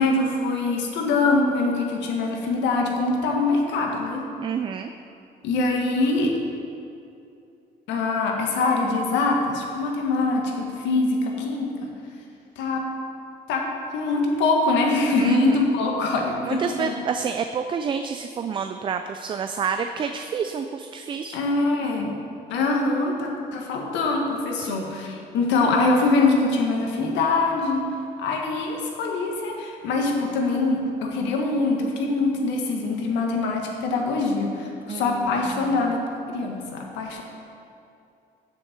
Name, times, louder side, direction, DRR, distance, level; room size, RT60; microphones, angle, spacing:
voice 1, 0.0-4.3 5.4-6.3 7.9-11.9 12.6-12.8 13.5-13.6 13.9-17.0 21.3-22.1 22.5-27.9 28.2-36.0 36.3-37.2, left 3 dB, 90° left, 0 dB, 1.7 m, -23 dB
voice 2, 4.4-4.9 15.2-15.7 16.4-21.4 24.5-24.9 34.9-35.9, right 6 dB, 30° right, 7 dB, 0.3 m, -29 dB
16.0 x 6.6 x 4.5 m, 2.6 s
cardioid pair, 160°, 18 cm